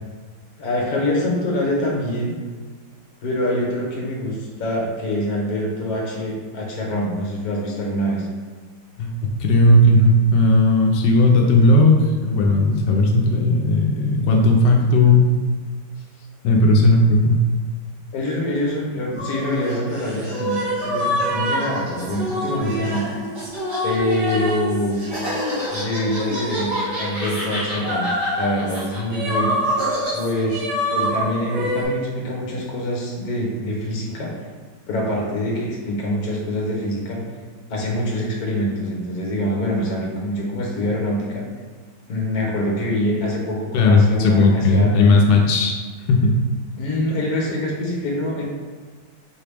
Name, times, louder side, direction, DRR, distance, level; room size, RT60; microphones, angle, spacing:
voice 1, 0.6-2.3 3.2-8.3 18.1-23.0 23.8-25.0 25.7-28.1 28.4-29.7 30.1-30.6 30.9-34.4 34.9-37.2 37.7-41.4 42.1-44.9 46.8-48.4, left 1 dB, 60° left, -2 dB, 1.4 m, -25 dB
voice 2, 9.0-15.3 16.4-17.4 43.7-45.8 46.1-46.3, left 2 dB, 90° left, 0 dB, 1.2 m, -15 dB
sound 1, 19.1-24.5 24.9-30.1, equal, 35° right, 1.7 m, -32 dB
sound 2, 19.2-31.8, equal, 55° right, 1.6 m, -26 dB
4.8 x 2.9 x 3.4 m, 1.5 s
omnidirectional pair, 1.9 m